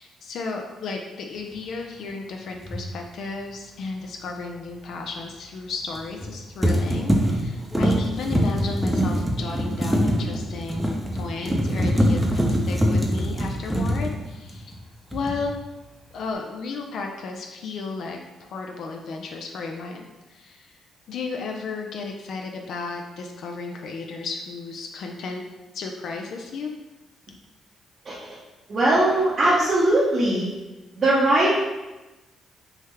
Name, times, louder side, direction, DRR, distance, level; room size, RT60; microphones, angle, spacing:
voice 1, 0.0-14.8 15.1-15.5 16.1-20.8 21.1-25.4 25.7-26.7, left 4 dB, 70° left, 2 dB, 0.4 m, -34 dB
sound 1, 2.6-2.8 5.9-6.3 6.6-14.8 15.1-15.6, equal, 10° right, 0.5 m, -23 dB
voice 2, 28.7-30.5 31.0-31.7, right 1 dB, 45° right, -7 dB, 0.7 m, -20 dB
3.4 x 2.1 x 3.2 m, 1.1 s
cardioid pair, 90°, 0 cm